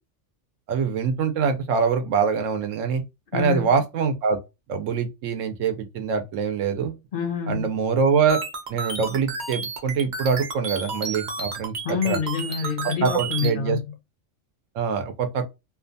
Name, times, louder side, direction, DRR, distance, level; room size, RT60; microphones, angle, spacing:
voice 1, 0.7-3.0 3.3-4.4 4.7-7.0 7.5-8.4 8.7-12.2 13.0-13.8 14.7-15.4, right 6 dB, 80° right, 1.0 m, -24 dB
voice 2, 3.3-3.7 7.1-7.7 11.8-13.9, left 6 dB, 60° left, 0.6 m, -27 dB
sound 1, 8.3-13.5, right 4 dB, 50° right, 0.6 m, -32 dB
2.7 x 2.2 x 2.6 m
omnidirectional pair, 1.3 m